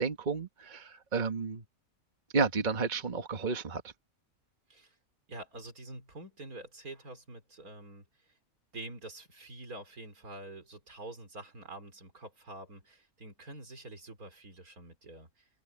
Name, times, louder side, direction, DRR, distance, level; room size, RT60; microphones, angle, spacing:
voice 1, 0.0-1.6 2.3-3.9, right 4 dB, 35° right, 1.6 m, -31 dB
voice 2, 5.3-8.3 8.7-15.5, right 2 dB, 85° right, 4.8 m, -47 dB
open air
omnidirectional pair, 1.5 m